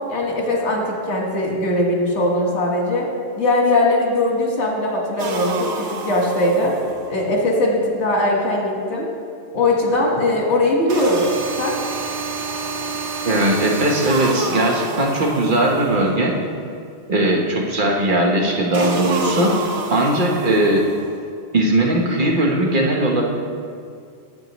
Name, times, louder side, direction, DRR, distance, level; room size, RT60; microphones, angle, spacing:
voice 1, 0.1-3.0 3.4-6.7 7.1-9.1 9.5-11.2 11.6-11.8, left 1 dB, 90° left, -1 dB, 1.7 m, -20 dB
sound 1, 5.2-7.2 10.9-16.2 18.7-21.1, right 3 dB, 85° right, 1.0 m, -28 dB
voice 2, 13.2-16.3 17.1-19.5 19.9-20.8 21.5-23.2, right 1 dB, 50° right, -1 dB, 1.1 m, -18 dB
9.7 x 7.7 x 3.0 m, 2.3 s
omnidirectional pair, 1.1 m